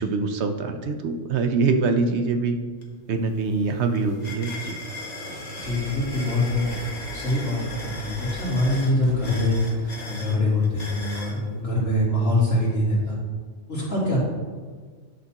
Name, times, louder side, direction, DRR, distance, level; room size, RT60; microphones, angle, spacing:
voice 1, 0.0-2.6 3.1-4.8, right 4 dB, 65° right, 6 dB, 0.9 m, -24 dB
sound 1, 2.8-2.9 3.2-11.4, left 2 dB, 35° left, 1.3 m, -38 dB
sound 2, 2.9-10.6, right 3 dB, 20° right, 2.8 m, -45 dB
sound 3, 5.3-10.7, right 1 dB, 90° right, 1.6 m, -42 dB
voice 2, 5.6-6.6 7.1-13.2 13.7-14.2, left 1 dB, 85° left, -7 dB, 3.3 m, -24 dB
11.5 x 6.7 x 2.9 m, 1.5 s
omnidirectional pair, 1.3 m